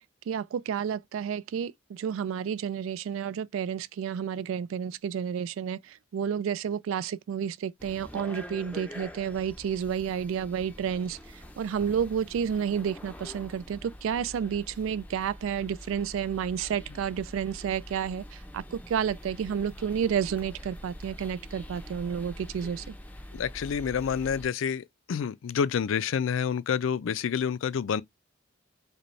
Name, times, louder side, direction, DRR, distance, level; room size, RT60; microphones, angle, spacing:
voice 1, 0.3-22.9, right 8 dB, 80° right, 0.3 m, -31 dB
sound 1, 7.8-24.5, left 1 dB, 10° left, 0.5 m, -45 dB
voice 2, 23.3-28.0, left 7 dB, 80° left, 0.4 m, -28 dB
5.1 x 2.2 x 3.2 m
head